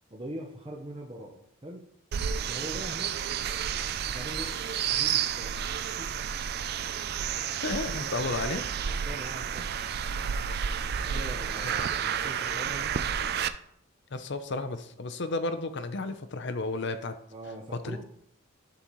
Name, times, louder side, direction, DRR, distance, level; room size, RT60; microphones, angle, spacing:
voice 1, 0.1-1.8 2.5-3.5 4.1-4.5 4.9-5.6 6.0-6.1 7.9-9.7 11.1-12.9 17.3-18.0, right 1 dB, 25° right, -2 dB, 0.7 m, -42 dB
sound 1, 2.1-13.5, right 8 dB, 45° right, 0.3 m, -31 dB
voice 2, 7.6-8.6 11.6-11.9 14.1-17.1 17.7-18.0, left 3 dB, 55° left, 10 dB, 0.6 m, -33 dB
11.5 x 4.1 x 3.1 m, 0.73 s
head